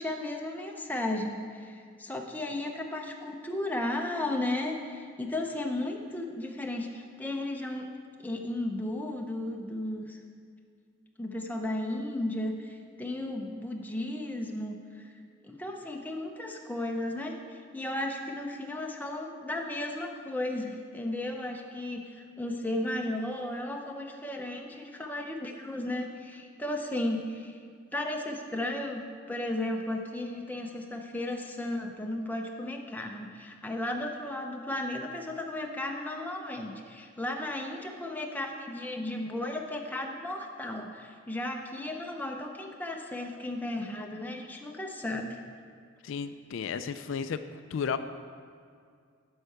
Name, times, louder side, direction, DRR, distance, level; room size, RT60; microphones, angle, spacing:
voice 1, 0.0-7.9 8.2-10.2 11.2-15.1 15.4-27.6 27.9-45.4, left 1 dB, 10° left, 2 dB, 0.6 m, -34 dB
voice 2, 46.0-47.4 47.7-48.0, left 6 dB, 70° left, 11 dB, 0.3 m, -33 dB
8.1 x 5.5 x 7.7 m, 2.2 s
head